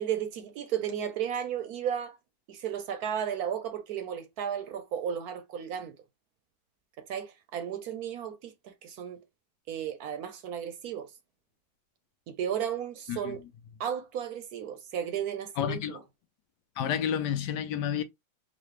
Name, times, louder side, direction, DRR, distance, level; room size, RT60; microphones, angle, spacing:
voice 1, 0.0-2.2 2.5-5.9 7.0-9.2 9.7-11.1 12.3-13.4 13.8-16.0, right 9 dB, 70° right, 1.0 m, -34 dB
voice 2, 15.6-16.0 16.8-18.0, left 9 dB, 75° left, 1.2 m, -30 dB
4.1 x 2.4 x 3.1 m
omnidirectional pair, 1.9 m